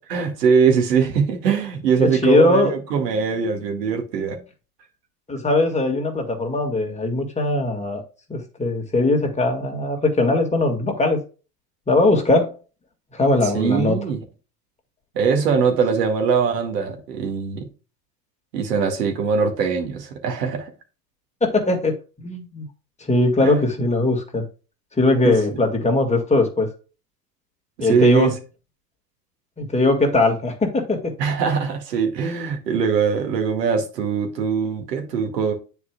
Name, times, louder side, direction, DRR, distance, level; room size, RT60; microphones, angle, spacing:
voice 1, 0.1-4.4 13.5-14.2 15.1-17.7 18.5-20.7 23.4-23.6 25.2-25.4 27.8-28.3 31.2-35.5, right 6 dB, 75° right, 1.9 m, -21 dB
voice 2, 2.0-2.7 5.3-8.0 8.3-11.2 11.9-12.5 13.1-14.0 21.4-21.9 22.2-22.7 23.1-24.4 25.0-26.7 27.8-28.3 29.6-31.1, left 2 dB, 15° left, 1.8 m, -20 dB
9.9 x 4.7 x 2.2 m
hypercardioid pair, 90°, 49 cm